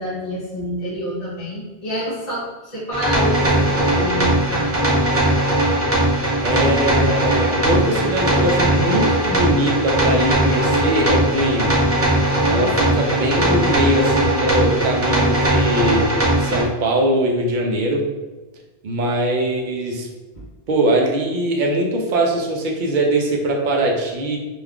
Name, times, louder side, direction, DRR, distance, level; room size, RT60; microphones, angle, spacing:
voice 1, 0.0-4.7 12.4-12.6 20.3-20.4, equal, 45° left, -8 dB, 0.7 m, -27 dB
sound 1, 2.9-16.6, right 1 dB, 15° right, 0.6 m, -19 dB
voice 2, 6.4-11.8 12.5-16.1 16.4-18.1 18.8-20.1 20.7-24.4, right 1 dB, 60° right, 0 dB, 0.6 m, -21 dB
2.4 x 2.3 x 3.5 m, 1.2 s
omnidirectional pair, 1.1 m